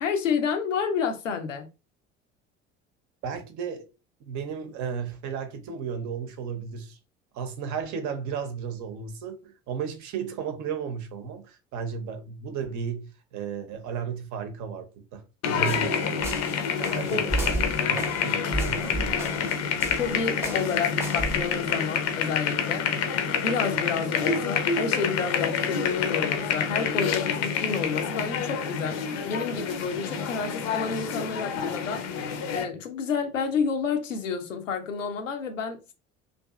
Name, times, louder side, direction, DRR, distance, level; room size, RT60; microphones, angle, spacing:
voice 1, 0.0-1.7 15.6-15.7 17.1-17.3 20.0-22.9 23.4-32.0 32.5-35.9, left 5 dB, 85° left, 0.6 m, -30 dB
voice 2, 3.2-3.9 4.2-7.0 7.3-16.5 16.8-19.2, right 6 dB, 50° right, 0.7 m, -34 dB
sound 1, 15.4-32.7, left 6 dB, 45° left, 0.6 m, -28 dB
sound 2, 15.5-21.9, right 2 dB, 5° right, 0.7 m, -34 dB
2.5 x 2.4 x 2.3 m
figure-of-eight pair, 60°, 38 cm